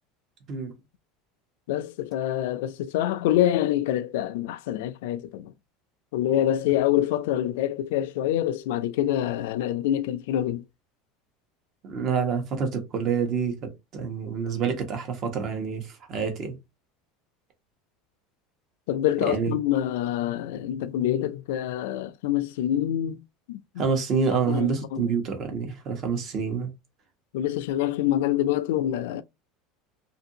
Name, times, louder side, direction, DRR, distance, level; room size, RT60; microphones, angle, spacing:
voice 1, 1.7-5.5 6.1-10.6 18.9-23.2 23.5-23.6 24.5-25.1 27.3-29.2, left 12 dB, 80° left, 0.3 m, -26 dB
voice 2, 11.8-16.5 19.2-19.5 23.8-26.7, right 6 dB, 40° right, 1.0 m, -27 dB
2.6 x 2.6 x 2.7 m
supercardioid pair, 135°, 0 cm